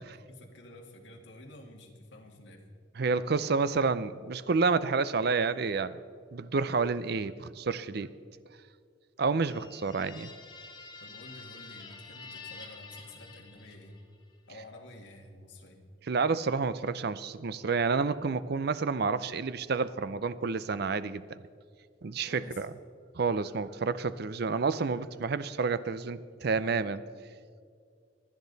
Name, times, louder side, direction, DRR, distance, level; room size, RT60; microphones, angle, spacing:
voice 1, 0.3-2.7 11.0-14.0 14.5-15.9 22.3-22.7, left 1 dB, 70° left, 1 dB, 2.0 m, -50 dB
voice 2, 3.0-6.0 6.3-8.1 9.2-10.3 16.1-21.4 22.0-22.7 23.2-27.0, right 4 dB, 55° right, 14 dB, 0.5 m, -29 dB
sound 1, 9.4-14.1, left 4 dB, 25° left, 1.3 m, -48 dB
26.0 x 10.5 x 4.0 m, 2.2 s
head